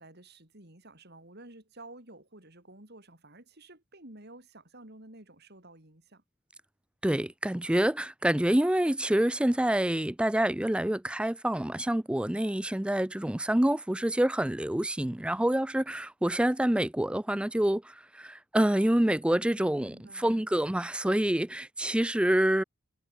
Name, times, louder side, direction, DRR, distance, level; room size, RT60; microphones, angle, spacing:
voice 1, 0.0-6.2 19.8-20.5, right 2 dB, 45° right, 4.5 m, -51 dB
voice 2, 7.0-22.6, right 1 dB, 5° right, 0.3 m, -27 dB
head